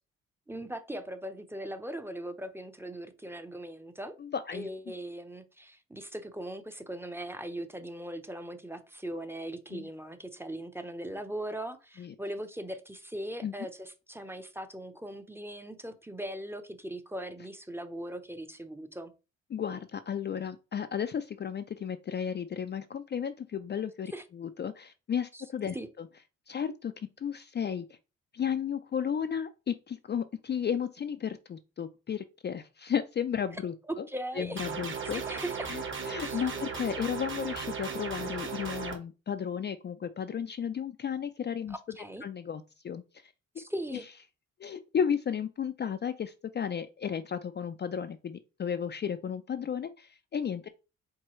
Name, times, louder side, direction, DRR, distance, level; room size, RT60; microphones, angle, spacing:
voice 1, 0.5-4.1 4.5-19.1 24.1-24.2 25.3-25.4 25.7-25.9 33.5-33.6 33.9-34.6 35.1-35.7 36.2-36.7 41.7-42.2 43.6-44.1, right 1 dB, 10° right, 0.7 m, -39 dB
voice 2, 4.2-4.7 9.7-9.9 12.0-12.1 13.4-13.5 19.5-26.1 26.5-27.9 28.3-34.0 34.3-35.2 35.7-41.8 42.2-43.0 43.9-44.0 44.6-50.7, left 8 dB, 35° left, 0.4 m, -34 dB
sound 1, 34.6-39.0, right 5 dB, 40° right, 1.3 m, -36 dB
4.6 x 3.6 x 3.1 m
cardioid pair, 65°, 30 cm